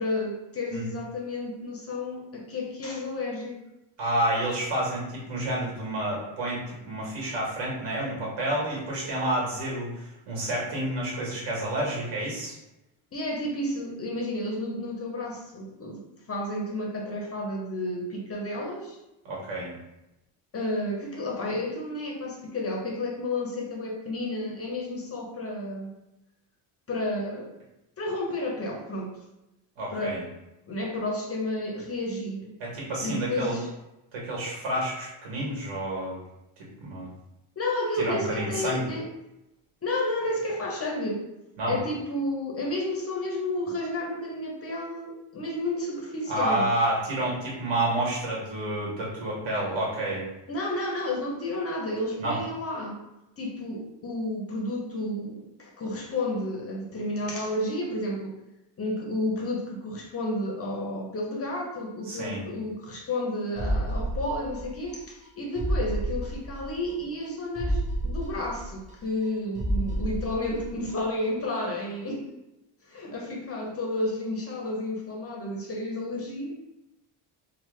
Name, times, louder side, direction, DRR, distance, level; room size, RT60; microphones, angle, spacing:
voice 1, 0.0-3.6 13.1-19.0 20.5-25.9 26.9-27.5 28.0-29.2 29.9-30.2 30.7-32.5 33.0-33.7 37.6-39.1 39.8-41.2 41.7-46.7 50.5-53.0 53.4-58.4 58.8-72.2 72.9-76.5, left 1 dB, 30° left, 0 dB, 0.6 m, -31 dB
voice 2, 4.0-12.5 19.2-19.7 29.8-30.2 32.6-33.6 34.1-36.2 36.6-37.1 38.0-38.8 41.6-41.8 46.3-50.2 52.2-52.4 62.1-62.4, right 1 dB, 65° right, -4 dB, 1.4 m, -29 dB
sound 1, 63.6-64.9 65.2-65.3 65.6-66.9 67.2-67.3 67.6-69.3 69.6-70.9 71.2-71.3, right 1 dB, 20° right, 0.3 m, -30 dB
3.2 x 2.0 x 3.2 m, 0.92 s
cardioid pair, 115°, 50 cm